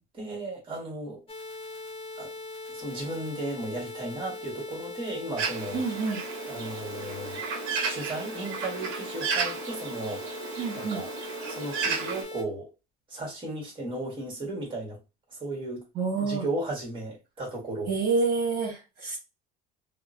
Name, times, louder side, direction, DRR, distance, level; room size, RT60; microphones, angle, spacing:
voice 1, 0.1-1.2 2.2-2.3 2.7-5.8 6.4-7.4 7.8-10.2 10.7-11.1 11.5-12.7 13.1-15.0 15.3-15.8 16.2-17.9, right 2 dB, 25° right, 1.4 m, -35 dB
sound 1, 1.3-12.4, left 2 dB, 25° left, 0.7 m, -40 dB
Bird, 5.4-12.2, right 5 dB, 70° right, 0.7 m, -34 dB
voice 2, 5.7-6.2 10.6-11.0 16.0-16.4 17.9-19.2, right 4 dB, 50° right, 1.1 m, -28 dB
2.8 x 2.1 x 2.5 m
cardioid pair, 130°, 21 cm